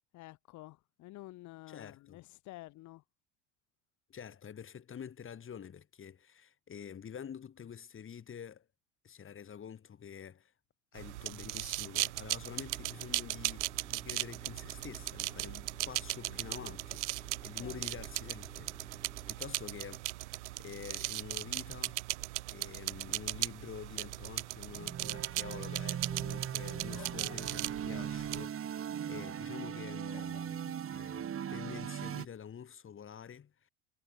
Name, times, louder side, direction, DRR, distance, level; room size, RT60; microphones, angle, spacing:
voice 1, 0.1-3.0 16.2-16.7 17.6-17.8 26.9-27.4 27.9-28.1 30.1-30.5, left 18 dB, 50° left, 3.4 m, -51 dB
voice 2, 1.7-2.2 4.1-8.7 9.0-10.5 10.9-20.3 20.6-22.0 22.5-28.6 29.1-33.7, left 8 dB, 35° left, 7.5 m, -47 dB
sound 1, 11.0-28.4, right 18 dB, 70° right, 1.1 m, -38 dB
sound 2, 12.6-20.9, right 2 dB, 10° right, 7.0 m, -55 dB
sound 3, 24.7-32.3, right 9 dB, 35° right, 5.1 m, -39 dB
figure-of-eight pair, 70°, 37 cm